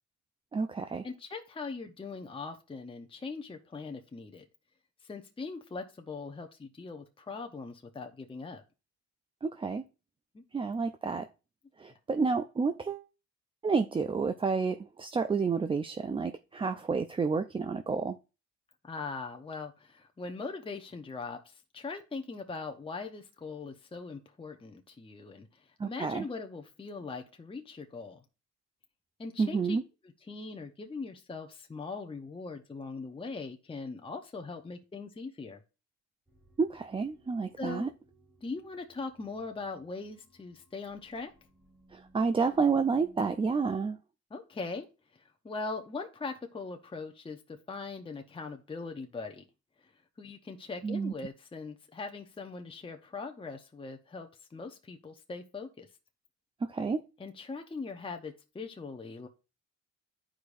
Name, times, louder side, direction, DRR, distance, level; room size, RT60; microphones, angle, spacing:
voice 1, 0.5-1.1 9.4-9.8 10.5-11.3 11.8-13.1 13.6-18.2 25.8-26.3 29.4-29.8 36.6-37.9 41.9-44.0 50.8-51.1 56.6-57.0, right 4 dB, 20° right, 0.3 m, -30 dB
voice 2, 1.0-4.4 5.0-8.6 10.3-10.4 18.8-28.2 29.2-29.8 30.3-35.6 37.6-37.9 38.4-41.3 44.3-44.9 45.1-49.4 49.8-49.9 50.2-55.9 57.2-59.3, left 4 dB, 20° left, 0.8 m, -41 dB
sound 1, 36.3-43.8, right 1 dB, ahead, 1.5 m, -62 dB
10.0 x 4.9 x 2.5 m
cardioid pair, 90°, 30 cm